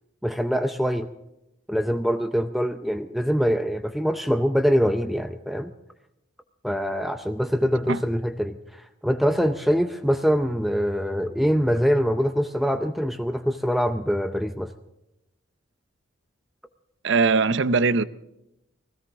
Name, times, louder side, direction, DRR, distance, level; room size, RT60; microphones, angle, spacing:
voice 1, 0.2-1.1 1.7-5.7 6.6-14.7, equal, ahead, 0.5 m, -24 dB
voice 2, 17.0-18.0, right 4 dB, 60° right, 0.6 m, -20 dB
20.5 x 16.5 x 3.6 m
head